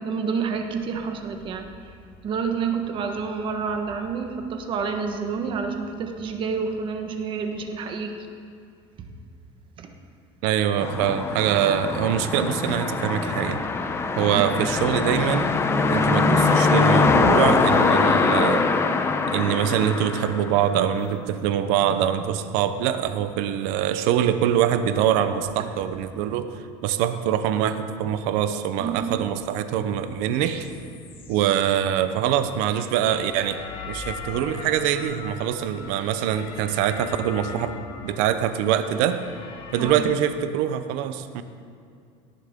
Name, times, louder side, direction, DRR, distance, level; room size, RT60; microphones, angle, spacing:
voice 1, 0.0-1.7 2.2-8.2 9.8-9.9 14.3-14.5 28.8-29.2 39.8-39.9, right 5 dB, 40° right, 5 dB, 1.3 m, -28 dB
voice 2, 10.4-13.6 14.2-15.5 15.9-18.6 19.3-26.5 26.8-30.7 31.3-37.7 38.0-39.2 39.7-41.4, right 10 dB, 75° right, 10 dB, 0.8 m, -24 dB
sound 1, 10.8-21.0, left 4 dB, 20° left, 0.8 m, -22 dB
sound 2, 30.3-40.0, left 4 dB, 45° left, 1.5 m, -40 dB
18.0 x 11.0 x 3.7 m, 2.4 s
cardioid pair, 140°, 13 cm